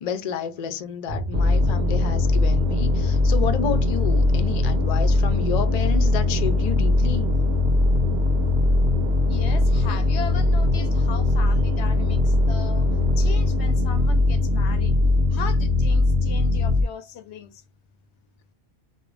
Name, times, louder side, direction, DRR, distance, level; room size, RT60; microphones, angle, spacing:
voice 1, 0.0-7.3, left 7 dB, 55° left, 0.5 m, -30 dB
sound 1, 1.1-6.6, right 1 dB, 30° right, 0.6 m, -40 dB
sound 2, 1.3-16.8, left 2 dB, 70° right, 0.9 m, -20 dB
voice 2, 9.3-12.9 13.2-14.9 15.3-17.6, left 7 dB, 85° left, 0.8 m, -37 dB
2.4 x 2.1 x 3.2 m
omnidirectional pair, 1.1 m